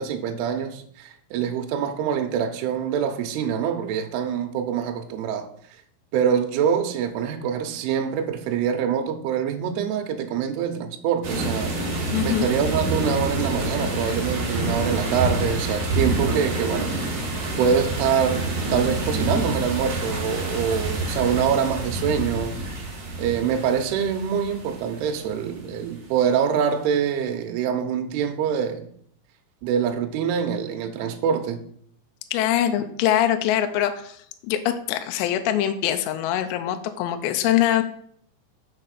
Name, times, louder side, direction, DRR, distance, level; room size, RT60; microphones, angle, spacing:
voice 1, 0.0-5.5 6.1-11.8 12.2-16.9 17.6-22.6 23.2-28.8 29.6-31.6, right 7 dB, 80° right, 2.4 m, -25 dB
sound 1, 11.2-25.8, right 2 dB, 50° right, 1.9 m, -27 dB
voice 2, 12.1-12.5 32.3-34.2 34.5-37.8, left 11 dB, 85° left, 2.6 m, -23 dB
6.6 x 4.1 x 6.5 m
omnidirectional pair, 5.5 m